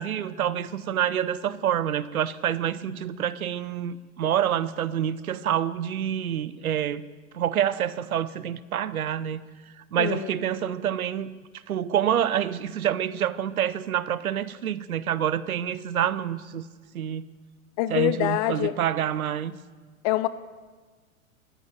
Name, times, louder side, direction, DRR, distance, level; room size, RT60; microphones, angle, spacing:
voice 1, 0.0-7.0 7.3-9.4 9.9-11.3 11.7-16.6 16.9-17.3 17.9-19.6, right 10 dB, 80° right, 16 dB, 0.8 m, -27 dB
voice 2, 10.0-10.4 17.8-18.8 20.0-20.3, left 15 dB, 30° left, 15 dB, 0.4 m, -25 dB
13.5 x 7.9 x 9.1 m, 1.4 s
hypercardioid pair, 110°, 42 cm